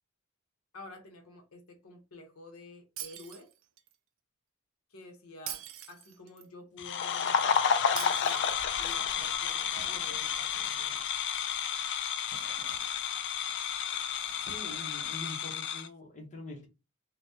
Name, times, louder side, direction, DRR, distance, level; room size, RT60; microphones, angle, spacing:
voice 1, 0.7-3.5 4.9-8.5 8.8-11.1, left 2 dB, 70° left, 0.7 m, -50 dB
Shatter, 3.0-3.9 5.5-6.5 8.0-9.0, right 11 dB, 65° right, 0.4 m, -42 dB
sound 1, 6.8-15.9, left 7 dB, 55° left, 0.3 m, -31 dB
sound 2, 8.5-15.2, right 1 dB, 35° right, 1.1 m, -54 dB
voice 2, 14.5-16.7, left 2 dB, 35° left, 0.7 m, -44 dB
3.4 x 2.1 x 2.6 m
head